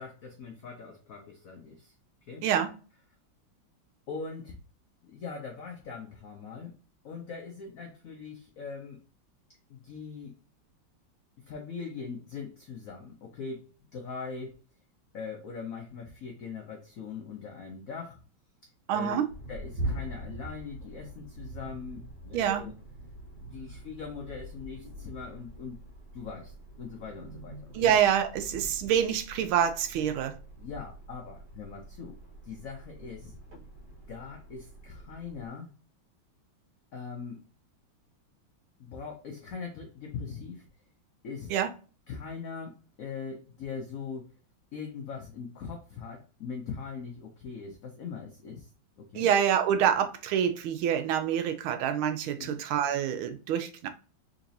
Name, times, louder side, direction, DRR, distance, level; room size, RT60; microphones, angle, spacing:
voice 1, 0.0-1.9 2.2-2.5 4.1-4.6 5.1-6.8 7.0-9.0 9.7-10.4 11.4-13.7 13.9-14.6 15.1-18.2 18.9-22.7 23.4-25.8 26.1-27.9 30.6-33.4 34.1-35.7 36.9-37.4 38.8-40.7 41.2-41.5 42.1-44.3 44.7-48.7 49.0-49.3 52.4-52.6, left 5 dB, 85° left, 0.7 m, -41 dB
voice 2, 18.9-19.3 22.3-22.7 27.7-30.3 41.5-41.7 49.1-53.9, right 9 dB, 85° right, 1.4 m, -26 dB
sound 1, 19.3-35.5, right 1 dB, 65° right, 1.8 m, -43 dB
3.9 x 2.9 x 2.7 m
omnidirectional pair, 2.3 m